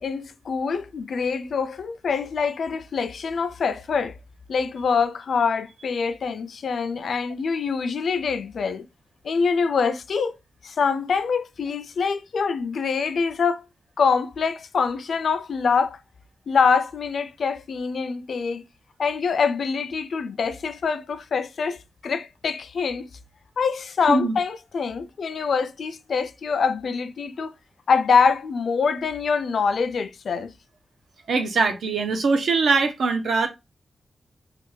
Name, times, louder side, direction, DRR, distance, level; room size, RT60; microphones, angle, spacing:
voice 1, 0.0-4.2 4.5-8.8 9.2-10.4 10.6-13.6 14.0-16.0 16.5-18.6 19.0-23.1 23.6-27.5 27.9-30.5, left 5 dB, 65° left, 0.3 m, -24 dB
voice 2, 31.3-33.5, right 4 dB, 80° right, 0.6 m, -22 dB
3.3 x 2.2 x 3.1 m
wide cardioid pair, 180°, 0 cm